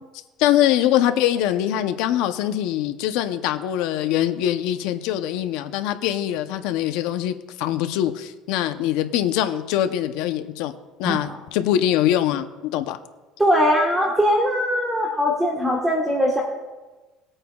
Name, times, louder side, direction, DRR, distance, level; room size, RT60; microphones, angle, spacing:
voice 1, 0.4-10.7 11.0-13.0, left 12 dB, 80° left, 9 dB, 0.7 m, -23 dB
voice 2, 11.0-11.4 13.4-16.4, equal, 10° right, -2 dB, 1.3 m, -21 dB
19.5 x 8.8 x 2.4 m, 1.2 s
cardioid pair, 160°, 0 cm